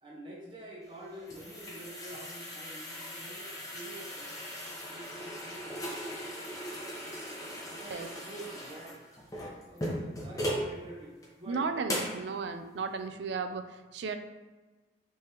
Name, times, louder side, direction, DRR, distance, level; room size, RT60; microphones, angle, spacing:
voice 1, 0.0-4.3 4.9-6.0 7.7-9.0 9.6-11.9, right 1 dB, 30° right, -4 dB, 1.0 m, -47 dB
sound 1, 0.9-10.7 11.2-11.3 11.9-12.2, equal, 20° left, 0.9 m, -38 dB
voice 2, 11.5-14.2, right 4 dB, 75° right, 9 dB, 0.4 m, -35 dB
5.2 x 3.3 x 2.9 m, 1.3 s
head